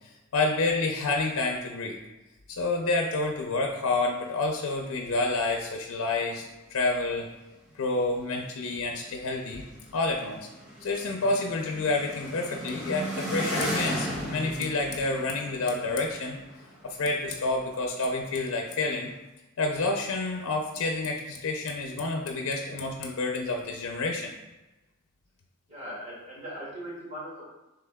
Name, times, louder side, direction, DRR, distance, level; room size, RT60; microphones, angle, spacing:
voice 1, 0.3-2.0 2.5-7.3 7.7-9.6 9.9-10.5 10.8-16.4 16.8-19.1 19.6-24.3, left 3 dB, 80° left, 2 dB, 0.5 m, -29 dB
sound 1, 6.1-6.2 6.4-6.5 7.7-7.8 8.3-8.4 8.6-17.6 18.1-19.1, equal, 5° right, 1.0 m, -36 dB
voice 2, 25.7-27.4, equal, 30° right, -6 dB, 1.5 m, -39 dB
5.6 x 3.3 x 2.2 m, 1.1 s
head